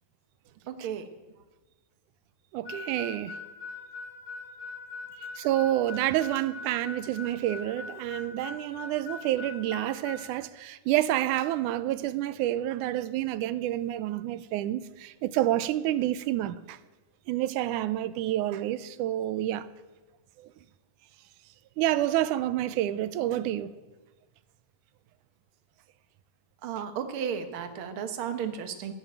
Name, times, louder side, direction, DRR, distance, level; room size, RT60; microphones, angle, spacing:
voice 1, 0.7-1.1 5.2-5.3 26.6-28.9, right 8 dB, 55° right, 1.6 m, -34 dB
voice 2, 2.5-3.4 5.4-16.8 17.3-19.7 20.4-20.5 21.8-23.7, right 13 dB, 85° right, 2.1 m, -28 dB
Harmonica, 2.6-10.2, left 4 dB, 50° left, 5.8 m, -41 dB
13.5 x 11.0 x 9.0 m
omnidirectional pair, 3.6 m